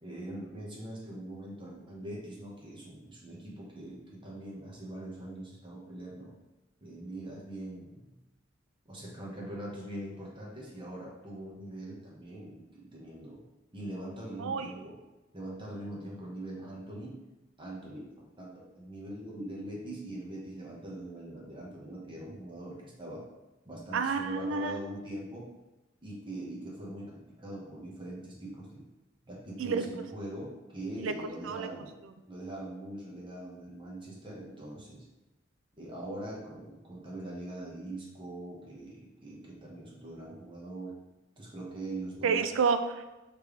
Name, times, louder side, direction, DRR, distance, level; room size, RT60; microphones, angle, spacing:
voice 1, 0.0-6.3 6.8-8.1 8.9-13.4 13.7-15.0 15.3-17.2 17.6-23.2 23.6-25.5 26.0-28.8 29.2-32.0 32.3-35.0 35.8-40.9 41.4-42.4, right 1 dB, 25° right, -4 dB, 1.1 m, -42 dB
voice 2, 23.9-24.7 29.6-29.9 31.0-31.1 31.4-31.7 42.2-43.0, right 5 dB, 70° right, 9 dB, 0.4 m, -29 dB
4.4 x 3.4 x 3.2 m, 1.0 s
head